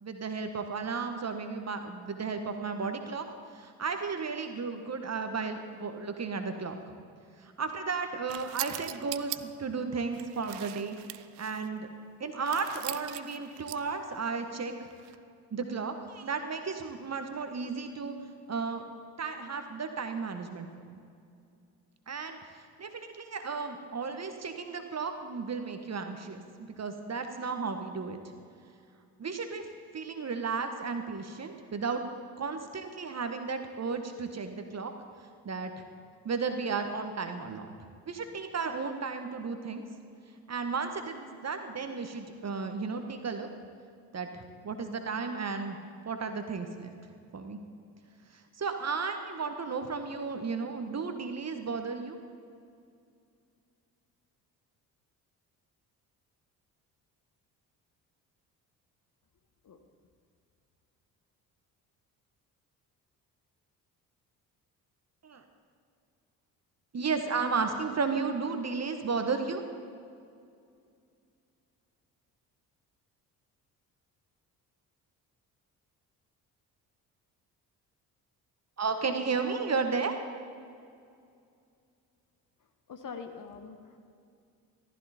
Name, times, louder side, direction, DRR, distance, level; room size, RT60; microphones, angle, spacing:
voice 1, 0.0-3.3 3.5-6.8 7.4-11.9 12.2-14.9 15.5-18.2 18.5-18.8 19.2-21.0 22.1-26.4 26.8-28.2 29.2-29.7 29.9-32.0 32.4-34.9 35.4-35.7 36.2-37.7 38.1-39.8 40.5-43.5 44.1-45.8 46.0-46.9 47.3-47.6 48.3-52.2 65.2-65.4 66.9-69.6 78.8-80.2, right 4 dB, 30° right, 7 dB, 1.5 m, -34 dB
sound 1, 8.3-9.4 10.1-11.7 12.5-14.0 14.9-15.2, right 19 dB, 55° right, 0.6 m, -40 dB
voice 2, 82.9-84.0, left 5 dB, 40° left, 6 dB, 1.5 m, -43 dB
15.0 x 14.5 x 4.4 m, 2.4 s
figure-of-eight pair, 45°, 48 cm